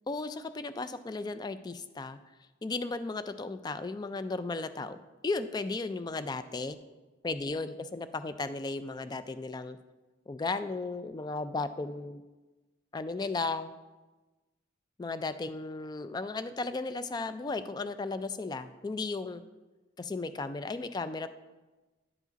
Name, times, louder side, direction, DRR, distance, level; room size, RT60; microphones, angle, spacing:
voice 1, 0.1-2.2 2.6-5.0 5.2-6.8 7.2-9.8 10.3-12.2 12.9-13.7 15.0-19.4 20.0-21.3, left 3 dB, 20° left, 12 dB, 0.3 m, -35 dB
9.8 x 4.9 x 4.0 m, 1.2 s
head